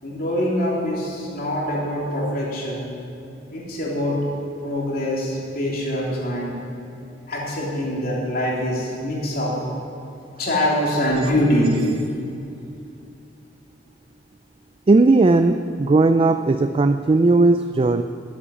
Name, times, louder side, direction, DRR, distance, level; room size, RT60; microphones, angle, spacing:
voice 1, 0.0-2.9 3.5-4.2 4.6-6.5 7.3-9.6 10.4-11.8, left 1 dB, 50° left, -4 dB, 3.2 m, -24 dB
voice 2, 14.9-18.0, right 3 dB, 30° right, 9 dB, 0.4 m, -17 dB
13.5 x 8.5 x 8.8 m, 2.6 s
head